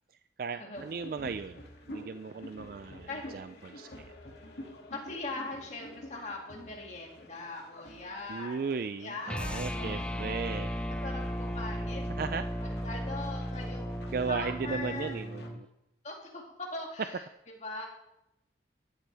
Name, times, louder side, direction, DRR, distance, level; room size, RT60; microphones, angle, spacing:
voice 1, 0.4-1.6 1.9-4.1 8.3-10.7 11.8-11.9 12.2-12.5 14.1-15.7, right 5 dB, 50° right, 11 dB, 0.3 m, -36 dB
sound 1, 0.7-15.5, left 1 dB, 70° left, 2.5 m, -50 dB
voice 2, 4.9-10.5 11.0-12.1 12.6-15.2 16.0-17.2 17.6-17.9, left 2 dB, 40° left, 0 dB, 2.4 m, -41 dB
sound 2, 9.3-15.6, equal, 5° left, 0.5 m, -35 dB
14.0 x 12.0 x 3.4 m, 0.87 s
head